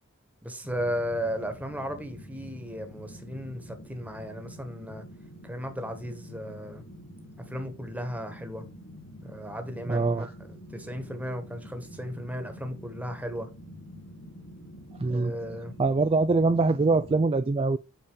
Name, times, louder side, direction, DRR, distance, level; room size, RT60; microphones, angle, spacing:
voice 1, 0.4-5.0 5.4-6.8 7.4-8.6 9.2-13.5 15.1-15.7, equal, 5° right, 1.5 m, -35 dB
sound 1, 0.6-17.2, equal, 55° left, 3.3 m, -46 dB
voice 2, 9.9-10.3 15.0-15.3 15.8-17.8, right 3 dB, 25° right, 0.3 m, -23 dB
8.5 x 4.3 x 4.9 m
head